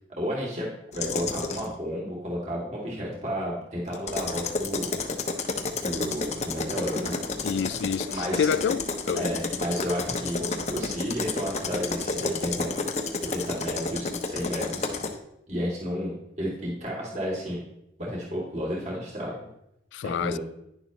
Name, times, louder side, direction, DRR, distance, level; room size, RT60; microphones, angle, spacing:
voice 1, 0.2-0.6 0.9-4.9 5.8-7.1 8.1-8.5 9.1-12.7 13.3-14.9 15.5-16.1 16.4-17.6 18.0-19.3 20.0-20.4, equal, 40° right, 2.8 m, -32 dB
sound 1, 0.9-1.7 3.9-15.1, left 3 dB, 40° left, 1.0 m, -31 dB
voice 2, 7.4-9.3 19.9-20.4, left 7 dB, 80° left, 0.3 m, -28 dB
11.0 x 10.5 x 3.1 m
head